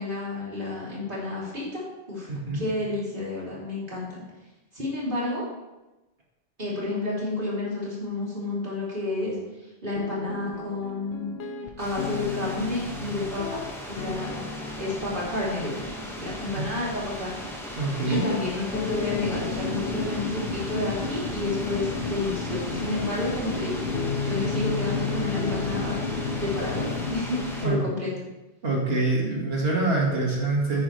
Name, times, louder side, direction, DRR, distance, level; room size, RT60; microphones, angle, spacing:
voice 1, 0.0-1.8 2.1-2.3 2.5-4.2 4.7-5.4 6.6-9.4 9.8-11.3 11.8-13.6 13.9-14.4 14.8-17.4 18.1-23.8 24.2-26.0 26.4-28.1, left 2 dB, 55° right, -6 dB, 3.4 m, -30 dB
voice 2, 2.3-2.6 16.5-16.7 17.8-18.2 27.6-27.8 28.6-30.8, right 2 dB, 75° right, -2 dB, 2.2 m, -25 dB
sound 1, 9.9-27.7, left 5 dB, 80° left, 1.1 m, -35 dB
sound 2, 11.8-27.7, equal, ahead, 1.6 m, -38 dB
sound 3, 18.9-27.2, left 3 dB, 55° left, 0.9 m, -33 dB
9.8 x 9.3 x 3.3 m, 1.0 s
omnidirectional pair, 1.1 m